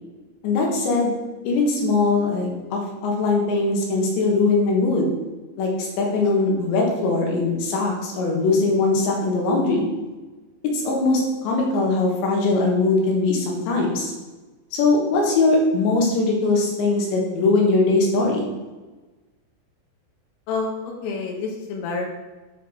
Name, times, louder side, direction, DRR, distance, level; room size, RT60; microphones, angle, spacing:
voice 1, 0.4-1.1 1.5-5.1 5.6-9.9 10.7-14.1 14.7-18.5, left 3 dB, 70° left, -1 dB, 3.4 m, -21 dB
voice 2, 20.5-22.1, left 4 dB, 85° left, 0 dB, 3.6 m, -28 dB
9.2 x 5.2 x 4.3 m, 1.2 s
omnidirectional pair, 5.7 m